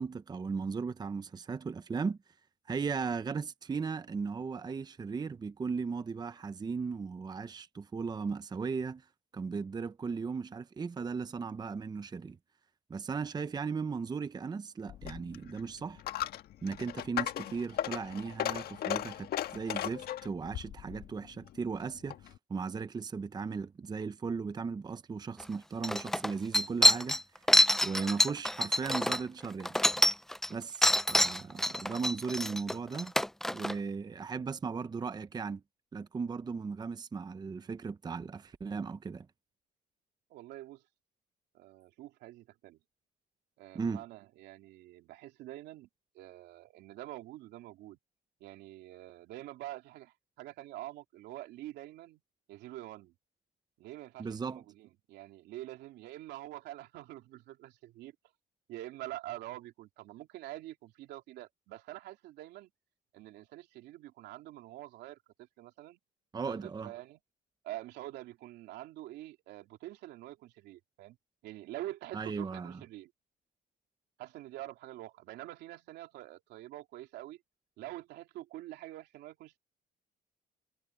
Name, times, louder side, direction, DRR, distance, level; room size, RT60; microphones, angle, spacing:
voice 1, 0.0-2.2 2.7-9.1 9.3-12.4 12.9-16.0 16.6-27.2 27.8-29.8 30.5-33.1 33.5-35.6 35.9-39.3 43.7-44.0 54.2-54.6 66.3-66.9 72.1-72.8, right 5 dB, 25° right, 0.8 m, -37 dB
Coin (dropping), 14.9-22.4, left 12 dB, 65° left, 1.6 m, -37 dB
sound 1, 25.4-25.5 25.8-30.5 30.8-33.7, left 1 dB, ahead, 0.5 m, -26 dB
voice 2, 40.3-40.8 41.5-42.8 43.6-45.9 46.1-48.0 48.4-52.2 52.5-53.1 53.8-58.1 58.7-62.7 63.1-66.0 66.5-67.2 67.6-71.2 71.4-73.1 74.2-77.4 77.8-79.6, right 15 dB, 85° right, 3.0 m, -46 dB
cardioid pair, 110°, 17 cm